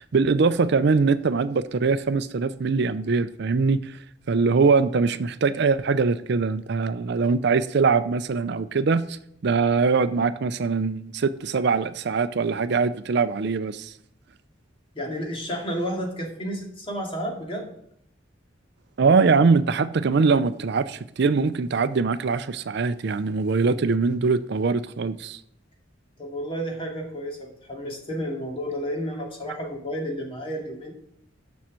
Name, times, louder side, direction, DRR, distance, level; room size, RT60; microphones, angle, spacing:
voice 1, 0.0-4.0 4.3-13.9 19.0-25.4, right 4 dB, 60° right, 0.5 m, -22 dB
voice 2, 14.9-17.7 26.2-30.9, equal, 30° left, 2.4 m, -31 dB
7.2 x 6.3 x 7.5 m
head